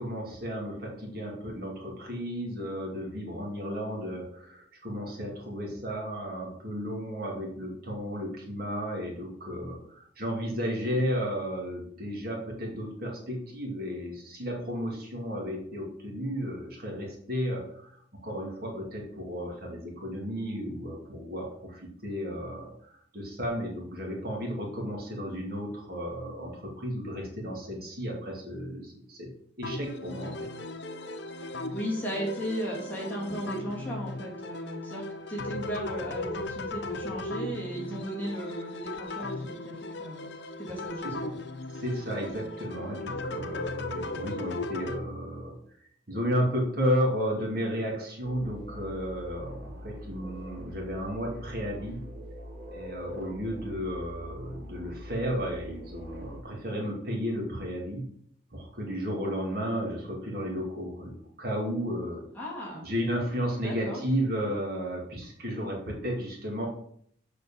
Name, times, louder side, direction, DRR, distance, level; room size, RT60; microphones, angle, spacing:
voice 1, 0.0-29.3 29.6-30.5 41.0-41.1 41.7-45.5 46.1-52.0 52.7-58.0 58.5-62.2 62.8-66.7, equal, 50° right, -1 dB, 2.4 m, -33 dB
sound 1, 29.6-45.0, left 2 dB, 70° left, 0.8 m, -37 dB
voice 2, 31.4-40.3 40.7-41.3 62.3-62.9 63.6-64.0, right 1 dB, 10° left, -5 dB, 2.8 m, -36 dB
sound 2, 48.2-56.4, equal, 70° right, 3.4 m, -43 dB
6.9 x 5.0 x 7.1 m, 0.66 s
head